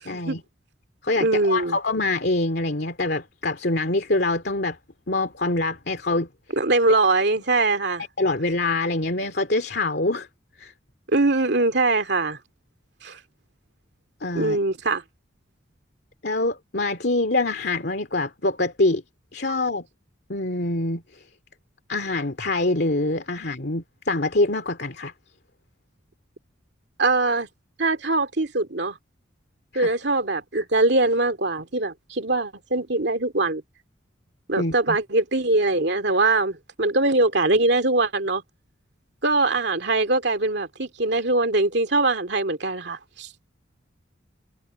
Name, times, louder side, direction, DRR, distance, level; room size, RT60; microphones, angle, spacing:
voice 1, 0.0-0.4 1.0-4.8 5.1-6.3 8.2-10.3 10.6-10.7 14.2-14.6 16.2-19.0 19.3-19.8 20.3-21.0 21.9-25.1 29.7-29.9 34.6-35.0, left 2 dB, 55° left, 2.4 m, -25 dB
voice 2, 1.2-1.8 6.6-8.0 11.1-12.4 13.0-13.2 14.3-15.0 27.0-27.5 27.8-29.0 29.7-33.6 34.5-38.4 39.2-43.5, right 2 dB, 60° right, 2.5 m, -22 dB
head